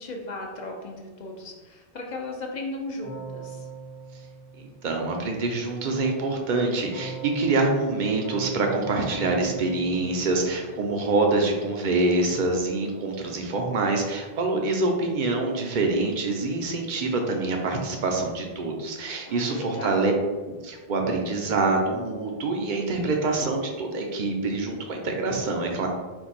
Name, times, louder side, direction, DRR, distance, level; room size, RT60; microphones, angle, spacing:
voice 1, 0.0-3.7 19.3-20.2, left 2 dB, 50° left, 1 dB, 0.7 m, -36 dB
Keyboard (musical), 3.0-5.3 6.9-11.2, right 4 dB, 75° right, 1.6 m, -41 dB
voice 2, 4.6-20.1 20.6-25.9, right 3 dB, 55° right, 2 dB, 0.7 m, -25 dB
4.5 x 2.2 x 4.1 m, 1.3 s
omnidirectional pair, 1.1 m